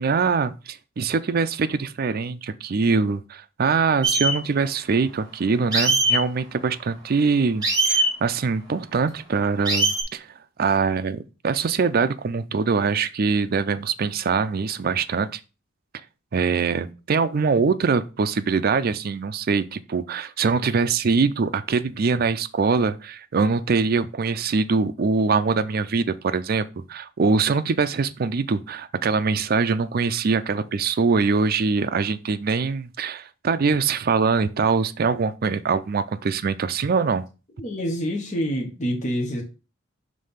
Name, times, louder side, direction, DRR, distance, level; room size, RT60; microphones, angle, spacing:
voice 1, 0.0-10.3 10.6-15.4 16.3-37.2, right 5 dB, 50° right, 0.4 m, -23 dB
sound 1, 4.0-4.3 5.7-6.2 7.6-8.1 9.6-10.0, right 2 dB, 20° right, 2.7 m, -20 dB
voice 2, 37.6-39.4, equal, 40° left, 1.0 m, -27 dB
5.4 x 3.3 x 5.5 m
head